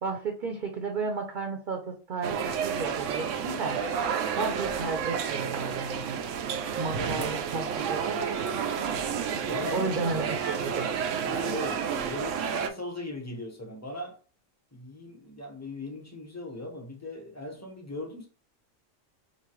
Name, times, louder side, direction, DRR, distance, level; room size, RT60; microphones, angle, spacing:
voice 1, 0.0-3.8 4.3-6.2 6.8-8.1 9.7-10.9, right 4 dB, 50° right, 0.7 m, -33 dB
sound 1, 2.2-12.7, right 7 dB, 90° right, 1.0 m, -30 dB
voice 2, 6.9-7.4 9.4-10.0 11.3-14.2 14.7-18.3, left 2 dB, 15° left, 0.9 m, -39 dB
5.3 x 2.5 x 3.1 m
omnidirectional pair, 1.3 m